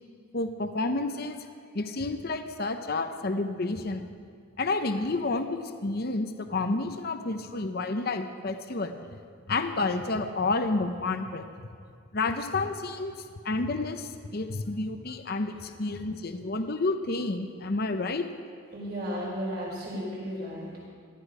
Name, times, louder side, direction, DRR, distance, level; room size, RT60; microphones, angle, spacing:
voice 1, 0.3-4.1 4.6-9.2 9.5-11.5 12.1-13.1 13.4-18.3, left 3 dB, 50° left, 8 dB, 0.7 m, -30 dB
voice 2, 18.7-20.9, equal, 50° right, -4 dB, 4.7 m, -34 dB
18.0 x 13.0 x 4.9 m, 2.1 s
head